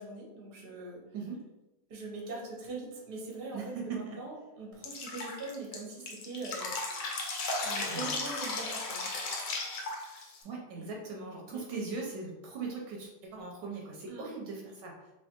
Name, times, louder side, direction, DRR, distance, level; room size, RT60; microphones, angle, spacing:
voice 1, 0.0-1.0 1.9-6.7 7.6-9.1 10.7-10.9 11.5-11.6 14.1-14.2, right 3 dB, 45° right, -3 dB, 0.7 m, -42 dB
voice 2, 3.5-4.2 7.8-8.1 10.4-14.9, right 4 dB, 70° right, -1 dB, 1.1 m, -40 dB
Drip, 4.8-10.4, left 3 dB, 70° left, 0.8 m, -35 dB
3.2 x 3.0 x 2.8 m, 1.0 s
omnidirectional pair, 2.1 m